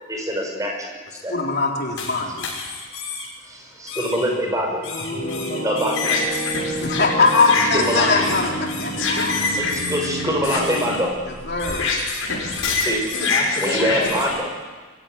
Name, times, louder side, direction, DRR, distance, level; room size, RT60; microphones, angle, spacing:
voice 1, 0.1-1.3 3.4-4.9 5.6-5.9 7.7-8.1 9.6-11.2 12.7-13.1 13.6-14.5, equal, 15° right, 1 dB, 5.5 m, -24 dB
voice 2, 1.3-2.5 6.8-9.5 11.5-11.9, left 3 dB, 50° left, 0 dB, 3.6 m, -21 dB
sound 1, 2.0-3.3 3.9-4.3 4.8-14.4, left 3 dB, 90° left, 6.7 m, -26 dB
voice 3, 4.8-6.4 13.3-14.1, left 2 dB, 35° left, -1 dB, 2.2 m, -31 dB
sound 2, 5.1-11.0, right 1 dB, 80° right, 7.0 m, -30 dB
24.0 x 16.0 x 9.3 m, 1.4 s
head